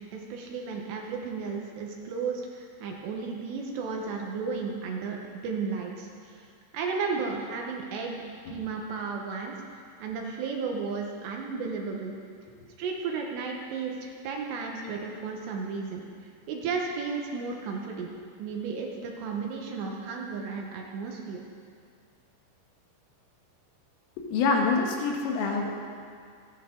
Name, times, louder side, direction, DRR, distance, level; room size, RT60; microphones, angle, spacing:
voice 1, 0.0-6.4 6.7-8.2 8.5-9.5 10.0-12.1 12.8-16.1 16.5-18.1 18.4-21.4, right 5 dB, 70° right, 1 dB, 2.9 m, -34 dB
voice 2, 24.2-25.7, left 4 dB, 85° left, 1 dB, 4.0 m, -26 dB
27.0 x 9.3 x 3.8 m, 2.2 s
omnidirectional pair, 5.7 m